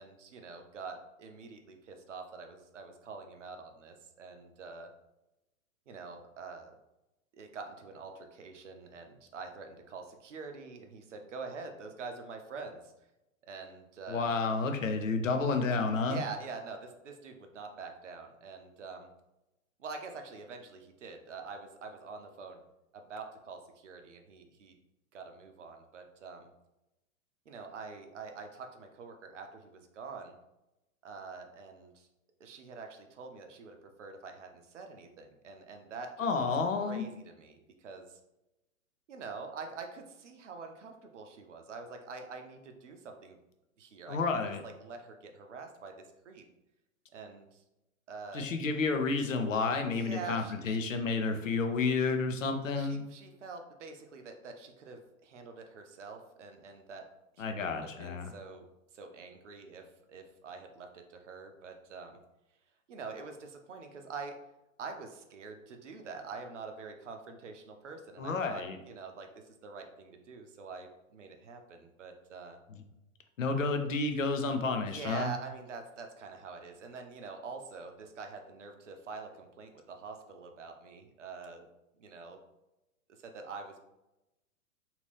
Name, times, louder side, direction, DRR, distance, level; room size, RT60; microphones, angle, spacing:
voice 1, 0.0-4.9 5.9-6.8 7.3-12.9 13.5-14.4 16.0-19.1 19.8-22.6 22.9-24.7 25.1-26.5 27.5-30.4 31.0-32.1 32.4-36.5 36.8-38.2 39.1-43.4 43.8-44.2 44.6-46.4 47.1-47.6 48.1-48.5 49.9-50.8 52.8-57.0 57.4-58.7 58.9-62.2 62.9-64.4 64.8-72.6 74.8-81.7 82.0-82.4 83.2-83.8, right 4 dB, 60° right, 5 dB, 0.6 m, -45 dB
voice 2, 14.1-16.2 36.2-37.1 44.1-44.6 48.3-53.0 57.4-58.3 68.2-68.8 73.4-75.3, left 4 dB, 70° left, 6 dB, 0.6 m, -30 dB
2.8 x 2.5 x 3.3 m, 0.94 s
figure-of-eight pair, 110°, 41 cm